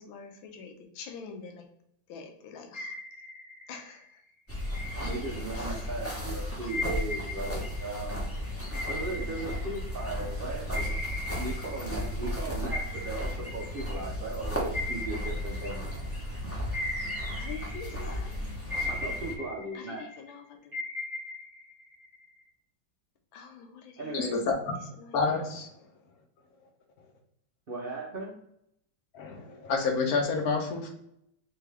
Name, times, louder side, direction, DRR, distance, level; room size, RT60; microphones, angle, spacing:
voice 1, 0.0-1.7 2.1-3.0 3.7-4.2 5.5-6.2 6.6-6.7 17.4-18.4 19.7-20.8 23.3-24.3 25.0-25.2, left 5 dB, 85° left, 4 dB, 1.5 m, -46 dB
sound 1, 2.7-4.0 4.7-5.9 6.7-10.3 10.7-12.4 12.7-16.3 16.7-18.3 18.7-20.3 20.7-22.4, left 2 dB, 15° right, 0.7 m, -38 dB
sound 2, 4.5-19.3, equal, 15° left, 0.5 m, -35 dB
voice 2, 5.0-8.2 8.9-11.0 11.3-15.8 18.9-20.1 24.0-24.4 27.7-28.3, right 2 dB, 75° right, -3 dB, 0.5 m, -37 dB
voice 3, 24.1-24.6 25.1-25.7 29.1-30.9, left 4 dB, 60° left, 2 dB, 1.1 m, -28 dB
3.6 x 3.3 x 3.3 m, 0.75 s
omnidirectional pair, 2.1 m